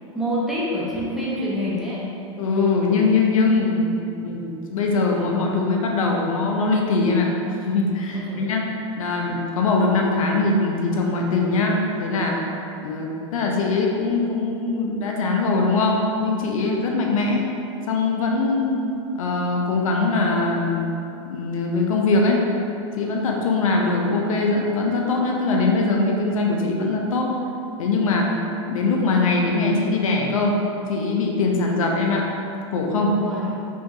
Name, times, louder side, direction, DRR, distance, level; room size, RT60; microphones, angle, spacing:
voice 1, 0.1-2.0 8.1-8.4 33.1-33.4, equal, ahead, -8 dB, 1.0 m, -26 dB
voice 2, 2.4-7.3 7.6-8.7 9.0-12.4 12.8-17.5 17.9-18.8 19.2-20.8 21.3-22.4 23.0-27.4 27.8-28.3 28.7-30.6 30.9-32.3 32.7-33.2, left 3 dB, 85° left, 0 dB, 0.6 m, -22 dB
5.0 x 2.8 x 2.5 m, 2.8 s
hypercardioid pair, 115°, 17 cm